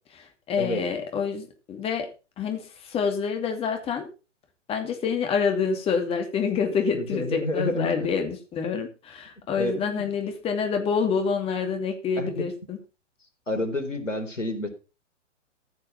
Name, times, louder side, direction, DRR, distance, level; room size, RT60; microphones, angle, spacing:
voice 1, 0.1-2.1 2.4-4.1 4.7-12.8, left 6 dB, 15° left, 5 dB, 2.5 m, -27 dB
voice 2, 6.9-8.1 9.6-10.1 12.2-12.4 13.5-14.7, left 1 dB, 80° left, 6 dB, 4.0 m, -29 dB
15.0 x 6.4 x 5.8 m, 0.32 s
figure-of-eight pair, 125°, 37 cm